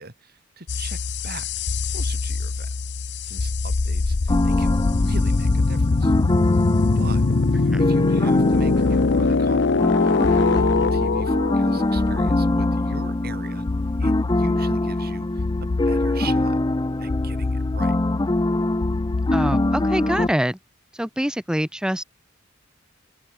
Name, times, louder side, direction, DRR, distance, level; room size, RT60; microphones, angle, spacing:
voice 1, 0.0-1.5 1.8-2.7 3.2-6.1 7.0-7.3 7.5-9.7 10.0-13.7 14.0-16.6 17.0-18.0, right 3 dB, 50° right, 5.8 m, -40 dB
sound 1, 0.7-20.3, left 3 dB, 60° left, 0.7 m, -24 dB
sound 2, 4.3-20.3, left 1 dB, 20° left, 0.7 m, -24 dB
voice 2, 19.3-20.6 20.9-22.0, equal, 5° right, 2.1 m, -25 dB
open air
head